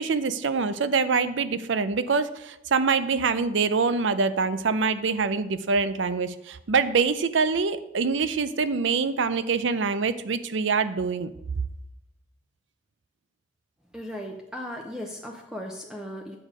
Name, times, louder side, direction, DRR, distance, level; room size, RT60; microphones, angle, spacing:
voice 1, 0.0-11.3, right 5 dB, 70° right, 13 dB, 0.5 m, -25 dB
voice 2, 13.9-16.4, equal, 5° right, 1 dB, 0.6 m, -37 dB
8.6 x 6.4 x 5.0 m, 0.87 s
head